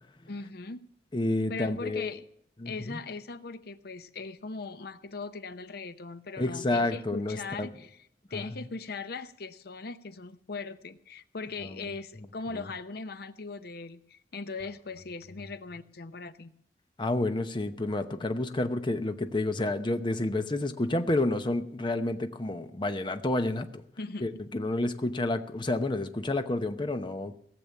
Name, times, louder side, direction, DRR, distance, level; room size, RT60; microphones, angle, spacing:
voice 1, 0.3-0.9 1.5-2.2 2.7-7.9 8.3-16.5 24.0-24.3, left 4 dB, 60° left, 12 dB, 0.7 m, -39 dB
voice 2, 1.1-2.1 2.6-3.0 6.4-7.7 8.3-8.5 11.6-11.9 12.5-12.7 15.4-15.5 17.0-23.8 24.2-27.4, left 2 dB, 25° left, 8 dB, 0.8 m, -30 dB
17.0 x 7.1 x 7.1 m, 0.72 s
head